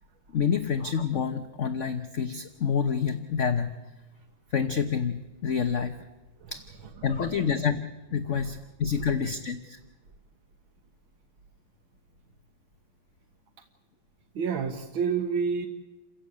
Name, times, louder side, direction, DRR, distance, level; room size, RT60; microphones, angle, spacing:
voice 1, 0.3-3.7 4.5-6.0 6.5-6.6 7.0-7.8 8.1-9.8, left 6 dB, 45° left, 8 dB, 1.2 m, -28 dB
voice 2, 14.4-15.7, right 6 dB, 85° right, 4 dB, 2.2 m, -28 dB
29.0 x 15.5 x 8.6 m, 1.2 s
omnidirectional pair, 2.1 m